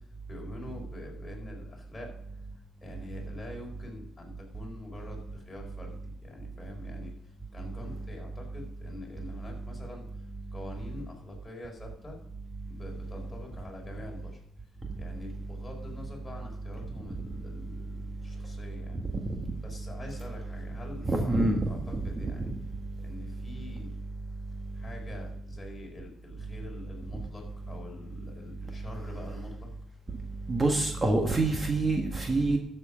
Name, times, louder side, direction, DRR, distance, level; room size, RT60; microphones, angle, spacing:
voice 1, 0.3-2.1 2.5-7.1 7.5-10.0 10.5-12.2 12.7-14.4 15.0-19.0 19.6-21.4 21.7-22.5 23.0-23.9 24.7-29.7, left 2 dB, 20° left, -1 dB, 4.7 m, -45 dB
voice 2, 21.1-21.6 30.5-32.6, right 2 dB, 30° right, 3 dB, 1.6 m, -25 dB
13.0 x 7.3 x 5.1 m, 0.80 s
cardioid pair, 90°, 0 cm